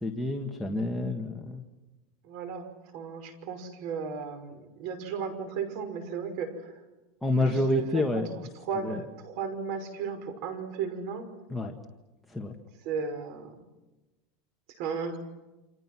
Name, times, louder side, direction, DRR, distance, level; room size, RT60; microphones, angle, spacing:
voice 1, 0.0-1.6 7.2-8.3 8.8-9.0 11.5-11.7 12.3-12.5, left 2 dB, ahead, 0 dB, 1.8 m, -28 dB
voice 2, 2.2-6.8 7.4-8.3 8.6-11.3 12.8-13.5 14.7-15.2, right 6 dB, 55° right, 9 dB, 5.7 m, -35 dB
29.0 x 27.0 x 6.2 m, 1.1 s
supercardioid pair, 150°, 0 cm